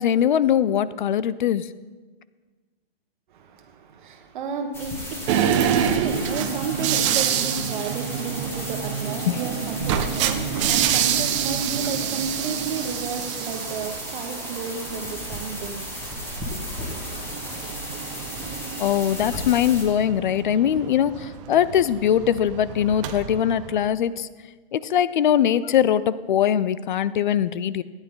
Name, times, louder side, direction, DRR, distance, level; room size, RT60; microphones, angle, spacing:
voice 1, 0.0-1.7 9.3-9.4 9.8-9.9 18.8-24.3 24.7-27.8, left 10 dB, 55° left, 18 dB, 0.5 m, -21 dB
voice 2, 3.3-15.9 16.5-16.6, right 5 dB, 50° right, 5 dB, 1.4 m, -32 dB
sound 1, 4.7-19.8, left 1 dB, 10° left, 1.8 m, -35 dB
sound 2, 5.3-23.9, right 9 dB, 30° right, 0.7 m, -28 dB
14.0 x 9.7 x 3.8 m, 1.4 s
hypercardioid pair, 135°, 31 cm